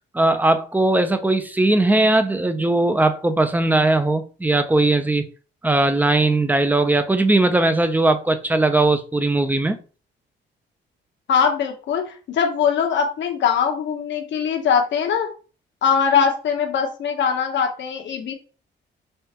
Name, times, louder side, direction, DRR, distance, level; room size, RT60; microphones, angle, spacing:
voice 1, 0.1-5.2 5.6-9.8, right 2 dB, 10° right, 0.6 m, -19 dB
voice 2, 11.3-15.3 15.8-18.3, left 7 dB, 65° left, 1.0 m, -21 dB
5.4 x 2.5 x 2.9 m
cardioid pair, 90°, 20 cm